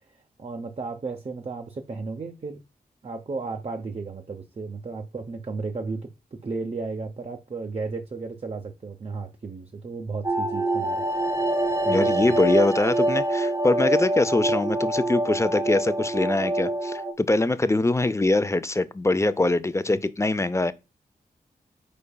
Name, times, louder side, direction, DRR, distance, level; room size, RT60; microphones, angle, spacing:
voice 1, 0.0-2.6 3.0-11.2 11.9-12.4 19.9-20.0, right 4 dB, 40° right, 0.7 m, -34 dB
sound 1, 10.2-17.1, right 1 dB, 20° right, 1.0 m, -25 dB
voice 2, 11.8-20.7, left 2 dB, 20° left, 0.5 m, -23 dB
5.2 x 4.5 x 2.3 m
cardioid pair, 65°, 16 cm